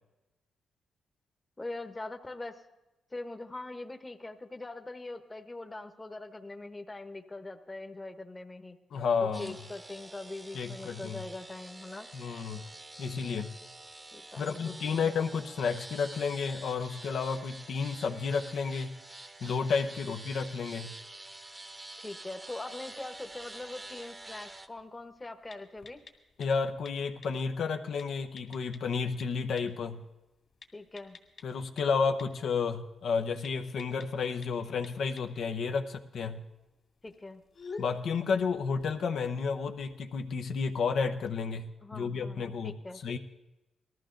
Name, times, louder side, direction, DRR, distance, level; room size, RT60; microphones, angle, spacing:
voice 1, 1.6-2.6 3.1-8.8 9.2-12.1 14.1-15.1 20.0-20.1 22.0-26.0 30.7-31.2 37.0-37.4 41.8-43.0, left 2 dB, 20° left, 7 dB, 1.1 m, -42 dB
voice 2, 8.9-9.6 10.5-11.2 12.1-12.6 13.0-13.5 14.4-18.9 19.4-20.9 26.4-30.0 31.4-36.4 37.8-42.7 43.0-43.2, left 5 dB, 70° left, 6 dB, 0.8 m, -31 dB
sound 1, 9.3-24.7, right 2 dB, 20° right, 0.9 m, -48 dB
sound 2, 23.1-41.4, left 4 dB, 50° left, 2.2 m, -54 dB
19.5 x 13.5 x 3.9 m, 1.0 s
cardioid pair, 90°, 0 cm